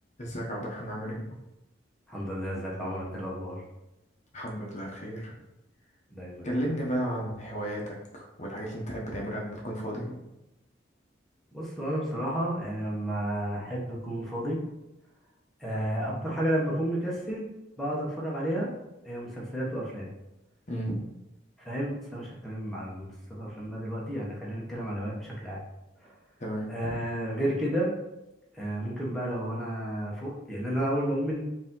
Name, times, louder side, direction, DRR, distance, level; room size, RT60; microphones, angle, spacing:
voice 1, 0.2-1.4 4.3-5.4 6.4-10.2 20.7-21.0 26.4-26.7, equal, 40° left, -2 dB, 0.8 m, -33 dB
voice 2, 2.1-3.6 6.1-6.6 11.5-14.6 15.6-17.5 17.8-18.7 19.0-20.1 21.6-25.6 26.0-26.1 26.7-27.9 28.5-31.4, right 1 dB, ahead, -5 dB, 1.0 m, -32 dB
4.8 x 2.7 x 3.7 m, 0.94 s
head